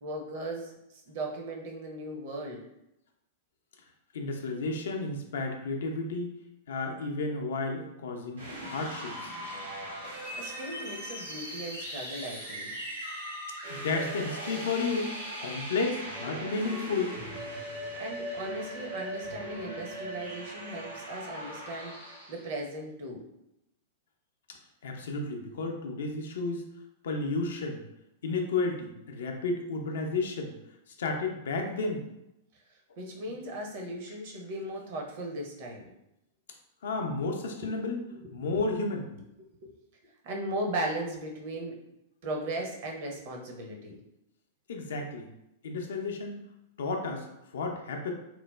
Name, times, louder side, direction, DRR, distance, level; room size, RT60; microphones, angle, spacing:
voice 1, 0.0-2.6 10.3-12.7 18.0-23.2 33.0-35.9 38.4-38.7 40.2-41.8 42.2-44.0, right 1 dB, 50° right, 0 dB, 0.6 m, -37 dB
voice 2, 4.1-6.3 6.7-9.3 13.7-15.1 15.4-17.1 24.8-26.7 27.0-27.8 28.2-30.5 31.0-32.0 36.8-38.0 38.3-39.1 44.7-45.3 45.6-46.4 46.8-47.3 47.5-48.1, left 3 dB, 65° left, 3 dB, 0.4 m, -32 dB
sound 1, 8.3-22.5, right 1 dB, 80° right, 1.1 m, -39 dB
3.0 x 2.0 x 2.2 m, 0.84 s
figure-of-eight pair, 95°, 0 cm